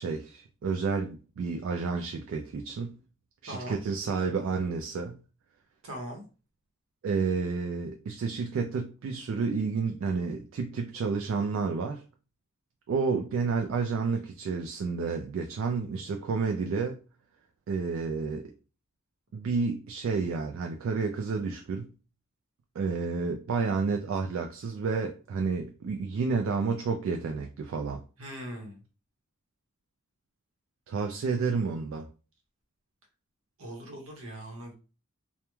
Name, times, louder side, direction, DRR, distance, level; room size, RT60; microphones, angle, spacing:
voice 1, 0.0-2.9 3.4-5.2 7.0-12.0 12.9-17.0 17.7-18.5 19.3-21.9 22.8-28.0 30.9-32.1, right 4 dB, 65° right, 0.3 m, -30 dB
voice 2, 3.5-3.8 5.8-6.2 28.2-28.8 33.6-34.7, right 1 dB, 85° right, 0.8 m, -40 dB
2.2 x 2.1 x 3.0 m
head